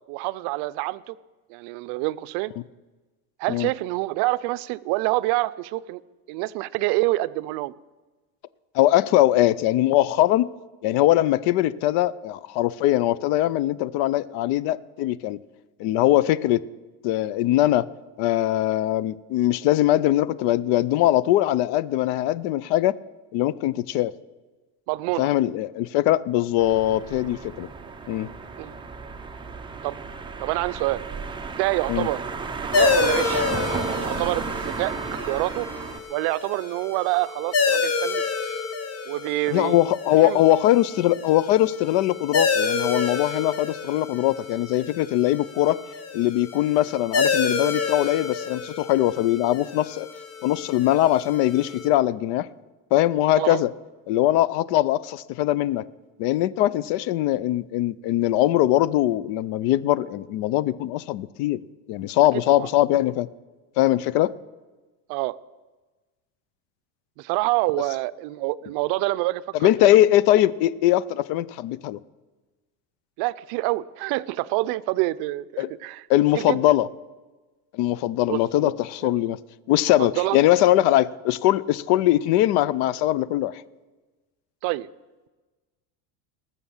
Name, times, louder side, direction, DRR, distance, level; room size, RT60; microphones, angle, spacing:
voice 1, 0.1-1.1 1.5-2.5 3.4-6.0 6.3-7.7 24.9-25.3 28.6-28.8 29.8-30.0 30.4-31.0 31.5-32.2 32.7-33.4 33.7-35.7 36.1-38.2 39.1-39.8 40.2-40.4 53.4-53.6 62.6-62.7 65.1-65.3 67.2-69.9 73.2-76.0 76.3-76.6 78.3-78.7 79.0-79.1 79.8-80.4 84.6-84.9, right 19 dB, 65° right, 16 dB, 0.6 m, -27 dB
voice 2, 8.7-10.5 10.8-15.4 15.8-16.6 17.0-17.9 18.2-22.9 23.3-24.1 25.2-27.7 28.1-28.3 31.9-32.1 39.5-45.8 46.1-50.1 50.4-52.5 52.9-53.7 54.1-55.8 56.2-61.6 61.9-63.3 63.8-64.3 69.6-72.0 75.6-75.7 76.1-76.9 77.7-79.4 79.7-83.6, left 14 dB, 65° left, 20 dB, 0.6 m, -21 dB
sound 1, 26.6-36.0, right 4 dB, 10° right, 0.7 m, -33 dB
sound 2, 32.7-51.9, left 5 dB, 35° left, 1.1 m, -28 dB
19.0 x 7.0 x 7.2 m, 1.2 s
cardioid pair, 140°, 44 cm